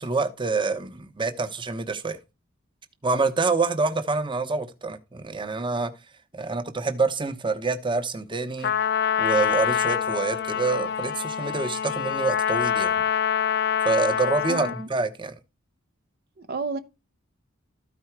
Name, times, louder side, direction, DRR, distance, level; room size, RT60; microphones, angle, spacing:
voice 1, 0.0-2.2 3.0-5.9 6.3-8.7 9.2-12.9 13.8-15.3, right 3 dB, 25° right, 1.0 m, -26 dB
Trumpet, 8.6-14.9, left 8 dB, 50° left, 0.5 m, -25 dB
voice 2, 14.5-14.9 16.4-16.8, right 3 dB, 50° right, 0.7 m, -31 dB
13.5 x 4.7 x 4.5 m
head